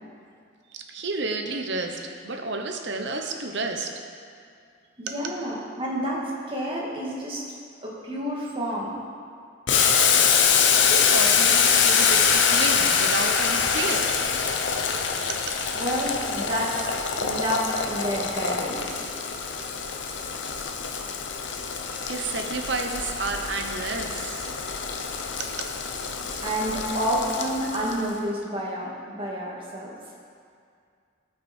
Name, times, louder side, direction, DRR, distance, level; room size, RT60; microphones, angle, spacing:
voice 1, 0.9-3.9 5.1-5.2 10.1-15.5 21.8-24.6 25.4-25.7, right 3 dB, 55° right, 4 dB, 0.9 m, -31 dB
voice 2, 5.0-7.4 7.8-9.0 15.7-19.1 26.4-30.0, equal, 25° right, -5 dB, 2.0 m, -29 dB
Boiling, 9.7-28.1, left 6 dB, 60° left, 0.8 m, -24 dB
18.0 x 6.1 x 4.4 m, 2.3 s
head